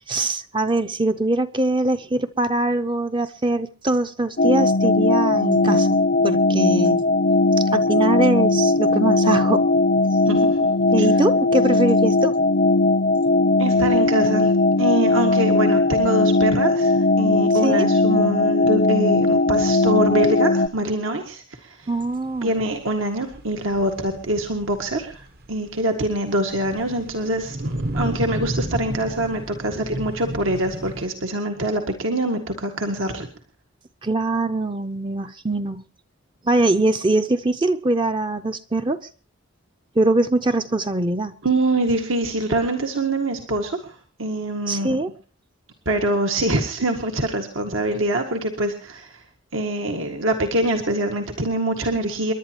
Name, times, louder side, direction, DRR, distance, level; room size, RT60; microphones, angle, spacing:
voice 1, 0.1-7.1 7.6-9.7 10.9-12.4 17.5-17.9 21.9-22.5 34.0-35.8 36.4-39.1 40.0-41.3 44.7-45.1, right 2 dB, 25° right, 0.6 m, -22 dB
sound 1, 4.4-20.7, left 2 dB, 45° left, 0.6 m, -18 dB
voice 2, 10.3-10.7 11.0-11.1 13.6-21.9 22.4-33.3 41.4-45.0 45.9-49.2 49.5-52.3, right 1 dB, 75° right, 1.8 m, -24 dB
sound 2, 21.9-31.0, right 1 dB, 45° right, 1.0 m, -32 dB
29.5 x 11.0 x 2.9 m
head